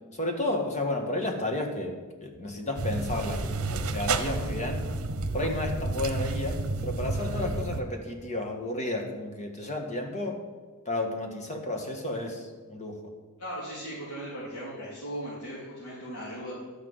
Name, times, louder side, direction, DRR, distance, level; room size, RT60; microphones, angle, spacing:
voice 1, 0.1-4.8 5.3-10.4 10.8-13.0, left 2 dB, 30° left, 3 dB, 1.6 m, -32 dB
sound 1, 2.8-7.8, right 3 dB, 70° right, 0.8 m, -31 dB
voice 2, 13.4-16.5, equal, 75° left, -8 dB, 3.4 m, -38 dB
12.0 x 6.0 x 7.9 m, 1.4 s
head